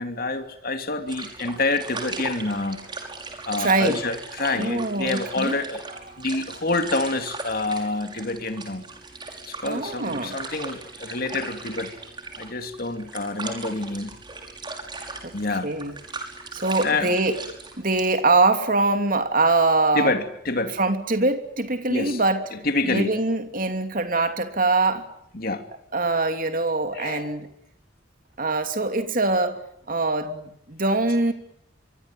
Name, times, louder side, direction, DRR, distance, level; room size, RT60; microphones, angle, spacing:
voice 1, 0.0-2.8 3.5-5.8 6.2-8.8 9.5-11.9 12.4-14.2 15.3-15.7 16.8-17.1 19.9-20.8 21.9-22.2 22.5-23.2 25.3-25.6 26.9-27.3, left 2 dB, 50° left, 6 dB, 2.8 m, -27 dB
sound 1, 1.1-18.1, right 3 dB, 25° right, 5.7 m, -38 dB
voice 2, 3.6-4.0 4.5-5.6 9.7-10.4 15.2-15.4 15.6-15.9 16.5-17.4 17.8-20.1 20.8-22.4 22.8-25.1 25.9-27.5 28.4-29.6 29.9-31.3, right 2 dB, 45° right, 7 dB, 3.0 m, -23 dB
24.5 x 24.5 x 9.1 m, 0.73 s
head